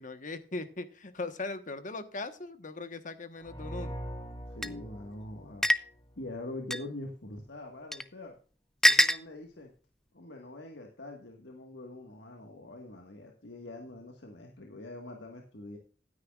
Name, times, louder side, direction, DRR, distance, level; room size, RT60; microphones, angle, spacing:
voice 1, 0.0-4.0, left 3 dB, 45° left, 1.2 m, -39 dB
sound 1, 3.4-6.2, equal, 25° left, 2.3 m, -42 dB
voice 2, 4.5-5.7 6.2-8.3 8.8-9.7 10.1-15.8, left 2 dB, 75° left, 1.6 m, -44 dB
sound 2, 4.6-4.7 5.6-5.8 6.7-6.8 7.9-8.0 8.8-9.2, equal, ahead, 0.5 m, -23 dB
15.0 x 9.6 x 2.4 m
head